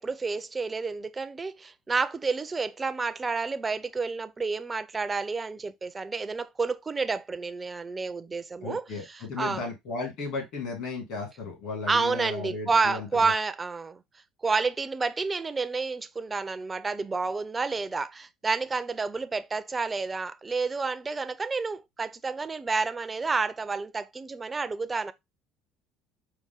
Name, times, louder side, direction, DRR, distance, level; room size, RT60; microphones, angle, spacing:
voice 1, 0.0-9.6 11.9-14.0 14.4-25.1, right 4 dB, 20° right, 0.4 m, -30 dB
voice 2, 8.6-13.3, left 4 dB, 65° left, 2.7 m, -35 dB
4.8 x 2.1 x 3.8 m
cardioid pair, 120°, 0 cm